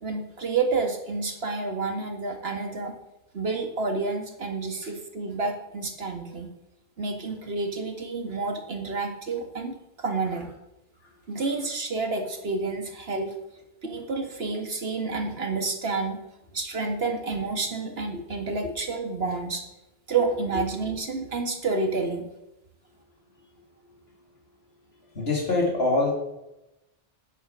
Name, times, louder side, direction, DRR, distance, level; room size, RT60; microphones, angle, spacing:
voice 1, 0.0-3.0 3.3-6.5 7.0-10.5 11.3-13.3 13.8-16.2 16.5-19.6 20.1-22.3, right 3 dB, 70° right, 4 dB, 2.0 m, -29 dB
voice 2, 25.1-26.1, left 3 dB, 75° left, -1 dB, 3.5 m, -24 dB
9.8 x 9.4 x 6.2 m, 0.91 s
omnidirectional pair, 1.1 m